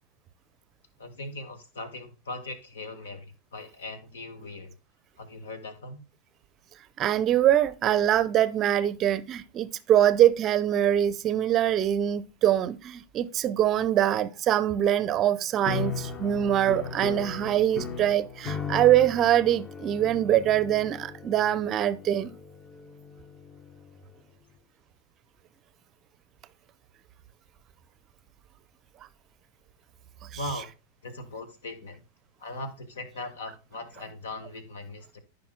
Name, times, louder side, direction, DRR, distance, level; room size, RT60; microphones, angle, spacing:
voice 1, 1.0-4.7 5.2-6.0 30.3-30.7 31.0-32.0 32.4-35.2, left 2 dB, 65° left, 1.6 m, -39 dB
voice 2, 7.0-22.4, right 11 dB, 30° right, 0.6 m, -23 dB
sound 1, 15.6-24.0, left 6 dB, 30° left, 1.1 m, -37 dB
14.5 x 5.5 x 2.2 m
figure-of-eight pair, 90°, 0 cm